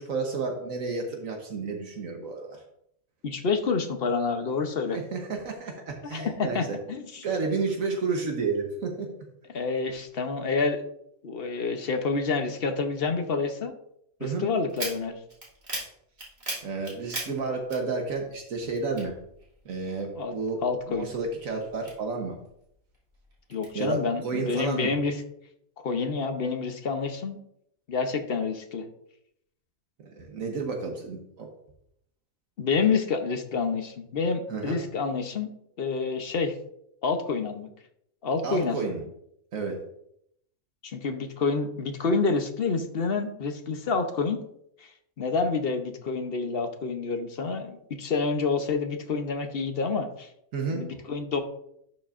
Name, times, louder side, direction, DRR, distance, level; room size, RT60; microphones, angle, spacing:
voice 1, 0.0-2.6 4.9-6.7 7.2-9.1 14.2-14.5 16.6-19.2 19.6-20.6 20.9-22.4 23.7-24.9 30.0-31.5 34.5-34.8 38.4-39.0 39.5-39.8 50.5-50.8, right 4 dB, 70° right, 2 dB, 1.5 m, -31 dB
voice 2, 3.2-5.0 6.0-7.3 9.5-10.8 11.2-13.7 14.2-15.2 20.2-20.3 20.6-21.1 23.5-25.2 25.8-27.4 27.9-28.9 32.6-35.5 35.8-36.5 37.0-37.7 38.2-38.8 40.8-44.4 45.2-50.3 50.7-51.4, left 4 dB, 50° left, 6 dB, 1.0 m, -28 dB
sound 1, 14.7-18.4 18.6-20.0 20.4-22.5 22.9-23.7, right 1 dB, 30° right, 2.7 m, -38 dB
11.5 x 6.2 x 2.5 m, 0.74 s
omnidirectional pair, 1.5 m